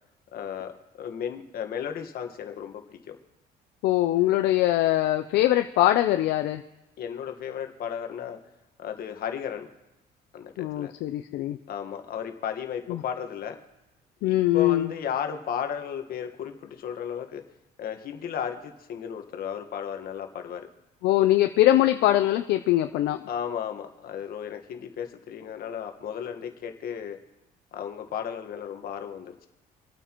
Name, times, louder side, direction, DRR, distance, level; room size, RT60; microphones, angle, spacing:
voice 1, 0.3-3.2 7.0-8.4 8.8-9.7 10.3-10.9 11.7-13.6 14.2-17.4 17.8-20.7 23.3-27.2 27.7-29.4, left 8 dB, 65° left, 6 dB, 1.5 m, -34 dB
voice 2, 3.8-6.6 10.6-11.6 12.9-13.0 14.2-14.9 21.0-23.2, left 14 dB, 80° left, 8 dB, 0.5 m, -22 dB
27.0 x 9.1 x 3.0 m, 0.96 s
cardioid pair, 110°, 17 cm